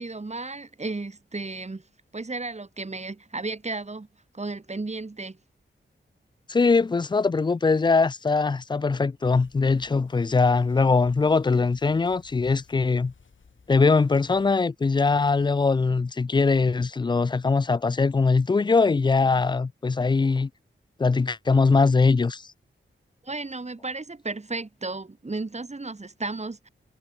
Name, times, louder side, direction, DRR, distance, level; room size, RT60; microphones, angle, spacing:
voice 1, 0.0-1.8 2.1-4.1 4.3-5.4 23.2-26.7, right 3 dB, 35° right, 3.5 m, -34 dB
voice 2, 6.5-13.1 13.7-20.5 21.0-22.4, left 4 dB, 20° left, 0.3 m, -21 dB
sound 1, 9.2-14.6, left 5 dB, 70° left, 7.7 m, -56 dB
wide cardioid pair, 85°, 21 cm